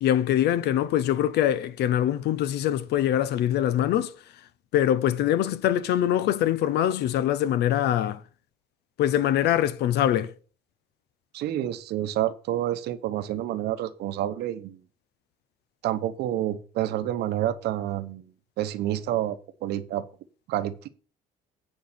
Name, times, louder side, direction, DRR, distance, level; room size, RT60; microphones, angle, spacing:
voice 1, 0.0-4.1 4.7-8.2 9.0-10.3, left 11 dB, 75° left, 0.9 m, -23 dB
voice 2, 11.3-14.8 15.8-18.3 18.6-20.1 20.5-20.9, right 12 dB, 75° right, 0.9 m, -28 dB
8.9 x 5.5 x 5.9 m
cardioid pair, 110°, 17 cm